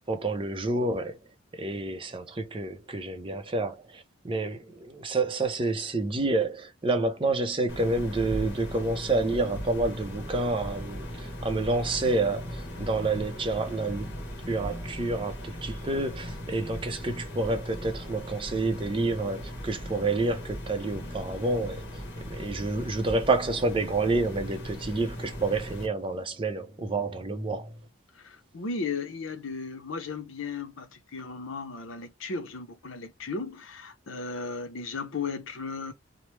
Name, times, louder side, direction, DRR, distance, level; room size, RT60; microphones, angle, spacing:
voice 1, 0.1-1.2 1.5-14.1 14.5-21.8 22.3-27.7, right 2 dB, 25° right, 0.5 m, -29 dB
sound 1, 7.7-25.9, equal, 55° left, 1.1 m, -38 dB
voice 2, 28.1-35.9, left 4 dB, 70° left, 0.7 m, -35 dB
3.0 x 2.1 x 3.1 m
head